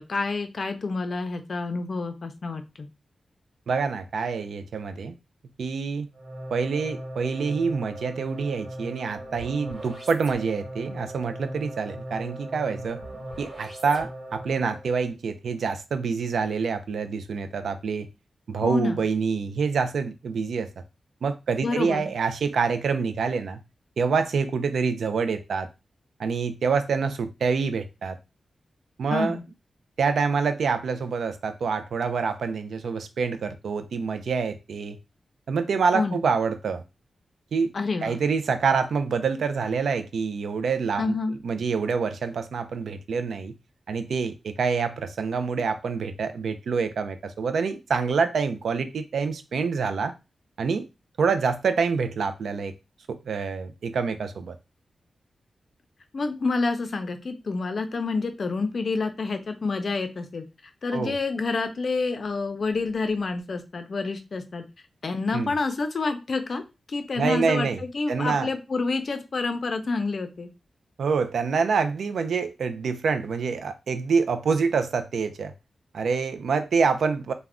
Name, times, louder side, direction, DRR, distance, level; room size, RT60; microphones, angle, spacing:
voice 1, 0.1-2.9 18.6-19.0 21.6-22.1 29.1-29.4 35.9-36.2 37.7-38.2 41.0-41.4 56.1-60.4 60.8-64.6 65.0-66.6 66.9-70.5, left 3 dB, 55° left, 0.5 m, -28 dB
voice 2, 3.7-5.1 5.6-6.1 6.5-13.0 13.4-18.1 18.5-20.7 21.2-23.6 24.0-25.7 26.2-28.2 29.0-29.4 30.0-35.0 35.5-36.8 37.5-37.7 38.0-41.1 41.4-43.5 43.9-50.1 50.6-50.9 51.2-52.7 53.1-54.6 60.9-61.2 65.3-65.5 67.2-68.5 71.0-75.5 75.9-77.3, right 5 dB, 85° right, 0.3 m, -26 dB
sound 1, 6.1-14.9, right 1 dB, 45° right, 1.2 m, -38 dB
2.4 x 2.1 x 3.5 m
wide cardioid pair, 90°, 0 cm